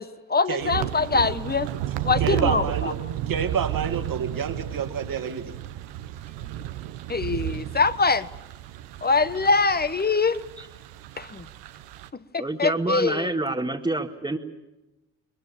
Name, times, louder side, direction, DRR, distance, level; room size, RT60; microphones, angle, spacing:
voice 1, 0.0-1.7 2.0-2.9 7.1-8.3 9.0-10.4 11.2-11.5 12.1-13.3, left 4 dB, 25° left, 14 dB, 1.2 m, -23 dB
sound 1, 0.6-12.1, right 13 dB, 85° right, 1.0 m, -33 dB
voice 2, 2.2-5.5, right 7 dB, 50° right, 6 dB, 2.4 m, -29 dB
voice 3, 12.4-14.4, right 2 dB, 10° right, -1 dB, 1.8 m, -27 dB
22.0 x 21.5 x 8.7 m, 1.0 s
supercardioid pair, 60°, 41 cm